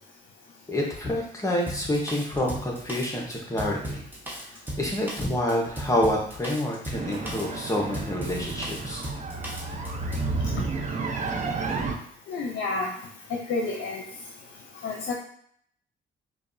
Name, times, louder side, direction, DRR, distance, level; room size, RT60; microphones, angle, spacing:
voice 1, 0.7-4.0 4.3-9.0, left 1 dB, 15° left, -2 dB, 1.0 m, -28 dB
Drum kit, 1.7-10.4, right 1 dB, 10° right, 1.0 m, -37 dB
sound 1, 6.9-11.9, right 3 dB, 40° right, 0.6 m, -31 dB
voice 2, 12.3-12.9 13.5-14.0 14.8-15.1, left 3 dB, 70° left, 0 dB, 0.6 m, -29 dB
4.9 x 2.4 x 2.6 m, 0.64 s
cardioid pair, 90°, 20 cm